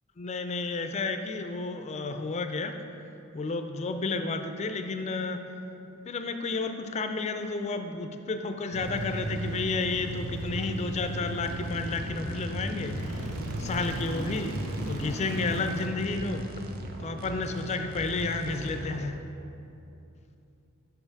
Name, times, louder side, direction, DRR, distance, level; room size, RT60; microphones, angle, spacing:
voice 1, 0.2-2.7 3.3-5.4 6.1-13.3 13.6-14.5 14.9-16.5 17.0-19.2, left 3 dB, 30° left, 7 dB, 0.3 m, -31 dB
sound 1, 8.7-15.9, right 1 dB, 80° right, 0.7 m, -35 dB
sound 2, 11.4-19.1, right 1 dB, 45° right, 0.5 m, -39 dB
5.8 x 5.4 x 4.7 m, 2.8 s
head